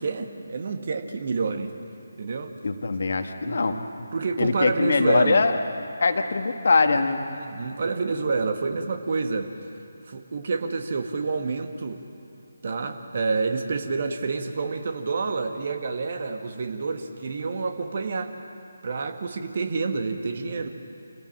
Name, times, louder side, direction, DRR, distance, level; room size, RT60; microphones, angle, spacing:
voice 1, 0.0-1.7 2.2-2.5 3.4-5.5 7.3-9.5 10.1-12.0 12.6-18.3 18.8-20.7, right 4 dB, 40° right, 6 dB, 1.6 m, -28 dB
voice 2, 2.6-3.8 4.4-5.5 6.0-7.2, left 3 dB, 50° left, 7 dB, 1.5 m, -22 dB
27.0 x 16.5 x 7.5 m, 2.7 s
figure-of-eight pair, 150°, 0 cm